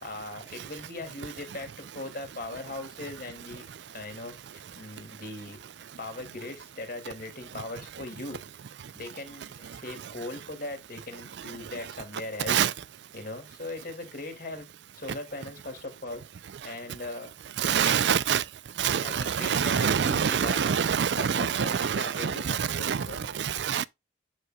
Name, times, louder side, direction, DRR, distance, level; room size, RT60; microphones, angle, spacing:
voice 1, 0.0-5.6 6.0-8.4 8.9-12.6 13.1-14.7 14.9-16.2 16.6-17.3 17.7-18.2 19.0-20.7 21.1-23.3, left 2 dB, 50° left, 2.6 m, -39 dB
voice 2, 17.6-18.4 18.8-23.9, right 7 dB, 70° right, 0.4 m, -26 dB
9.4 x 6.0 x 2.3 m
head